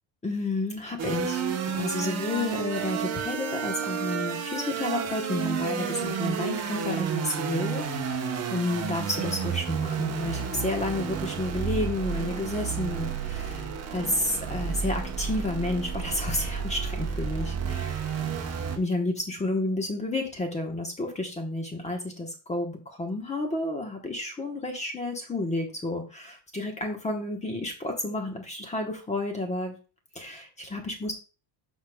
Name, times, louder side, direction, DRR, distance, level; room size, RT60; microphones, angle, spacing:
voice 1, 0.2-1.4 1.7-13.7 13.9-18.1 18.8-29.8 30.1-31.1, left 2 dB, 15° left, 3 dB, 1.0 m, -31 dB
sound 1, 1.0-18.8, right 6 dB, 30° right, 0.9 m, -31 dB
14.5 x 5.0 x 2.3 m, 0.33 s
cardioid pair, 175°, 49 cm